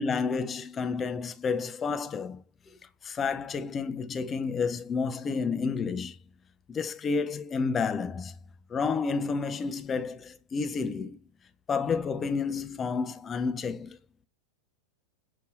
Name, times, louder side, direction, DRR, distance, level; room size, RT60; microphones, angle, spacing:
voice 1, 0.0-2.4 3.0-6.2 6.7-8.3 8.7-11.2 11.7-14.0, left 5 dB, 20° left, 0.5 m, -30 dB
6.7 x 2.7 x 2.4 m
figure-of-eight pair, 90°, 0 cm